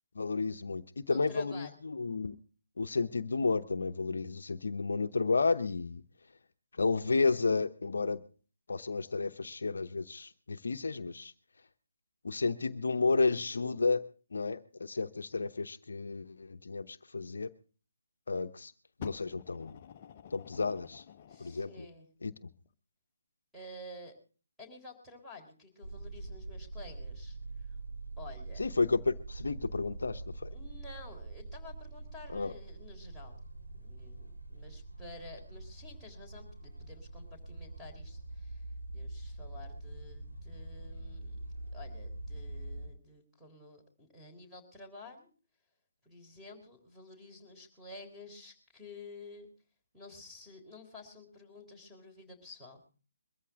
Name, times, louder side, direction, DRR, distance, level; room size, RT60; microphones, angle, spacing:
voice 1, 0.1-2.4 2.8-6.0 6.8-8.2 8.7-11.3 12.2-14.0 14.3-17.5 18.3-18.7 19.0-19.8 20.3-21.0 21.4-21.8 22.2-22.3 28.6-30.5 32.3-32.5, left 4 dB, 65° left, 9 dB, 0.8 m, -32 dB
voice 2, 1.1-1.8 21.3-22.1 23.5-24.1 24.6-27.8 28.2-28.7 30.5-33.4 33.7-38.6 38.9-41.4 41.7-45.3 46.0-49.5 49.9-52.9, left 2 dB, ahead, 1 dB, 3.7 m, -51 dB
Fire, 19.0-21.8 22.6-22.7, left 8 dB, 35° left, 0.7 m, -48 dB
sound 1, 25.8-42.9, right 2 dB, 90° right, 4.3 m, -44 dB
22.0 x 14.0 x 3.6 m, 0.38 s
figure-of-eight pair, 145°, 0 cm